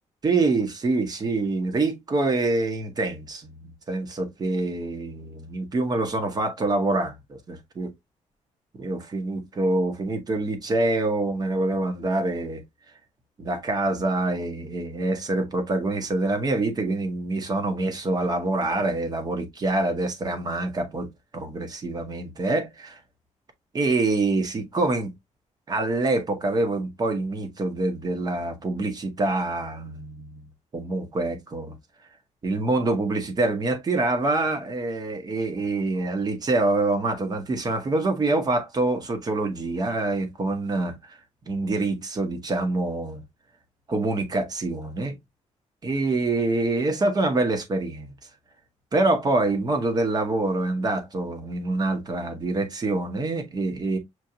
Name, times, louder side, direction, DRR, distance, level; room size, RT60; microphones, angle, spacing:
voice 1, 0.2-7.9 8.7-12.6 13.4-21.1 21.3-23.0 23.7-25.1 25.7-30.5 30.7-31.7 32.4-41.2 41.5-43.2 43.9-45.1 45.8-48.1 48.9-54.0, right 2 dB, 30° right, 1.0 m, -26 dB
6.2 x 2.5 x 2.8 m
wide cardioid pair, 160°, 13 cm